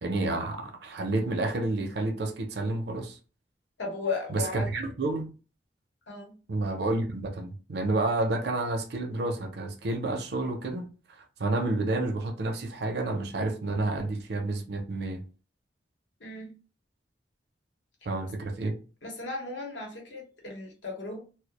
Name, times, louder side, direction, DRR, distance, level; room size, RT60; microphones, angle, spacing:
voice 1, 0.0-3.2 4.3-5.3 6.5-10.9 11.4-15.2 18.1-18.8, right 2 dB, 60° right, 0.5 m, -30 dB
voice 2, 3.8-4.7 6.1-6.4 16.2-16.6 19.0-21.2, left 3 dB, 75° left, 0.9 m, -35 dB
2.2 x 2.0 x 2.8 m
head